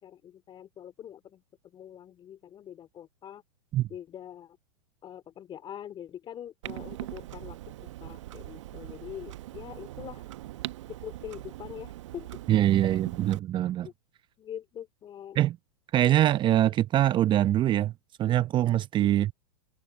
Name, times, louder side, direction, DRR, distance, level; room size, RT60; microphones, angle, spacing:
voice 1, 0.0-3.4 3.9-4.6 5.0-10.2 10.9-12.3 12.8-13.0 13.8-13.9 14.4-15.4 17.4-17.5 19.0-19.1, left 10 dB, 25° left, 2.6 m, -44 dB
Clock, 6.6-13.4, right 15 dB, 65° right, 1.1 m, -41 dB
voice 2, 12.5-13.9 15.4-15.6 15.9-17.9 18.2-19.3, right 12 dB, 30° right, 0.8 m, -23 dB
hypercardioid pair, 105°, 17 cm